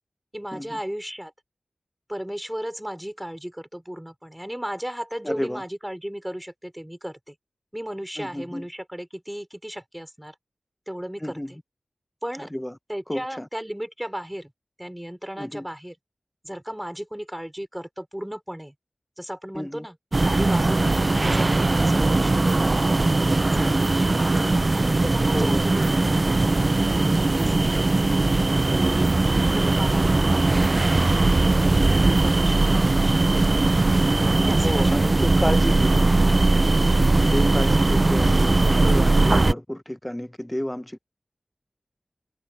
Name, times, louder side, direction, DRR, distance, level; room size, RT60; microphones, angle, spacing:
voice 1, 0.3-1.3 2.1-7.3 7.7-10.3 10.9-11.6 12.2-12.5 12.9-14.5 14.8-15.9 16.4-18.7 19.2-20.0 20.2-22.7 23.3-24.4 24.7-28.0 28.7-29.2 29.5-30.9 31.2-31.9 32.2-33.6 34.2-35.0 35.5-35.6 35.9-36.2 37.2-37.6 38.7-39.2, equal, 10° right, 4.6 m, -35 dB
voice 2, 5.2-5.6 8.2-8.7 11.2-11.5 12.4-12.8 13.1-13.5 15.4-15.7 19.5-19.9 20.8-21.1 23.6-23.8 25.3-25.7 28.8-29.1 31.6-31.9 34.5-36.1 37.2-41.0, left 1 dB, 15° left, 0.9 m, -31 dB
sound 1, 20.1-39.5, right 2 dB, 50° right, 0.4 m, -20 dB
cardioid pair, 40°, 0 cm